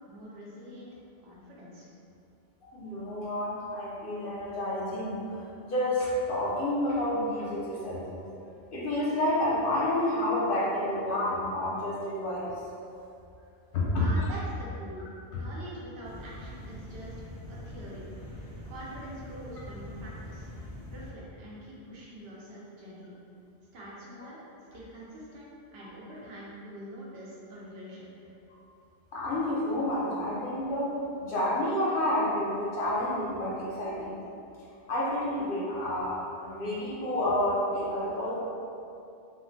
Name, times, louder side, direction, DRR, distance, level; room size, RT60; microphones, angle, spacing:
voice 1, 0.0-1.9 14.0-18.0 18.7-23.1 23.7-24.4 24.7-28.1, equal, 65° right, -6 dB, 0.9 m, -45 dB
voice 2, 2.6-12.6 13.7-14.1 25.8-25.9 29.1-30.9 31.2-34.3 34.9-38.4, left 1 dB, 60° left, -6 dB, 0.7 m, -30 dB
sound 1, 16.0-21.1, left 1 dB, 30° left, 0.4 m, -43 dB
3.5 x 2.0 x 2.6 m, 2.6 s
omnidirectional pair, 1.1 m